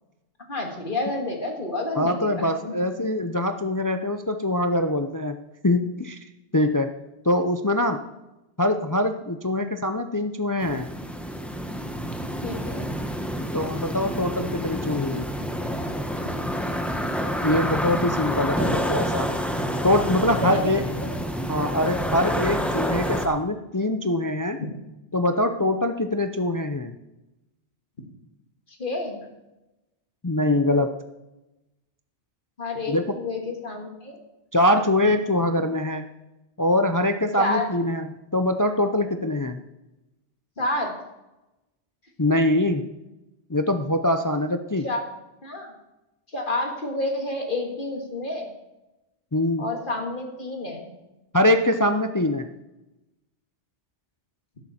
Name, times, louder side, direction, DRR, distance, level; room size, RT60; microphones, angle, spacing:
voice 1, 0.5-2.7 12.4-12.9 14.4-14.5 16.2-16.3 18.4-18.9 20.3-21.1 28.8-29.2 32.6-34.2 37.4-37.7 40.6-40.9 44.8-45.1 45.4-45.7 46.3-48.5 49.6-50.9, left 2 dB, 45° left, 1 dB, 2.2 m, -29 dB
voice 2, 2.0-6.2 6.5-7.0 7.2-8.0 8.6-10.9 13.5-15.3 17.4-19.3 19.8-20.8 21.5-24.6 25.1-26.9 30.2-30.9 32.9-33.2 34.5-36.1 36.6-38.1 38.3-39.6 42.2-42.8 43.5-44.9 49.3-49.7 51.3-52.5, left 1 dB, 25° left, 7 dB, 0.4 m, -23 dB
sound 1, 10.6-23.3, equal, ahead, 0.9 m, -28 dB
12.5 x 11.0 x 4.3 m, 0.98 s
omnidirectional pair, 1.2 m